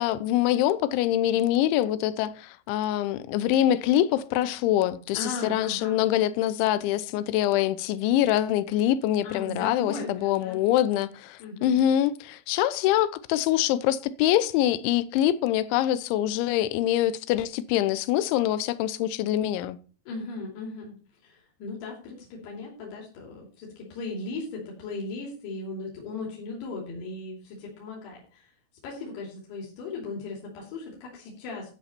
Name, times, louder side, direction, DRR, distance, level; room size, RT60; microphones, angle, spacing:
voice 1, 0.0-19.8, left 12 dB, 85° left, 3.1 m, -24 dB
voice 2, 5.1-6.0 9.2-10.6 11.4-11.7 20.1-20.9 21.2-28.5 28.8-31.7, left 3 dB, 65° left, 4.8 m, -37 dB
13.5 x 8.4 x 4.4 m
omnidirectional pair, 5.4 m